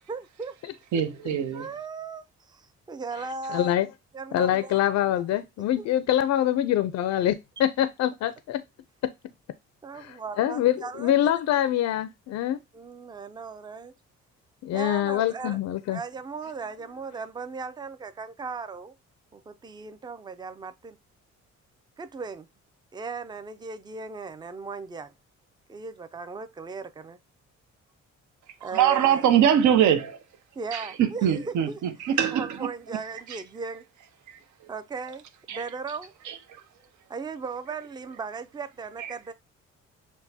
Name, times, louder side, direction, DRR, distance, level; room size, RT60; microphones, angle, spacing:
voice 1, 0.1-0.6 1.5-3.7 4.1-4.8 5.8-5.9 9.8-11.6 12.7-13.9 14.7-15.6 15.9-18.9 19.3-21.0 22.0-22.5 22.9-25.1 25.7-27.2 28.6-29.2 30.6-31.8 32.3-33.8 34.7-36.1 37.1-39.3, right 4 dB, 15° right, 0.4 m, -37 dB
voice 2, 0.9-1.7 28.7-30.2 30.7-32.6 33.3-33.4 35.5-35.6 36.3-36.4 39.0-39.1, right 9 dB, 70° right, 0.6 m, -23 dB
voice 3, 3.5-3.9 4.3-8.6 10.0-12.6 14.6-16.0, left 11 dB, 60° left, 0.4 m, -25 dB
6.1 x 2.2 x 2.7 m
cardioid pair, 90°, 30 cm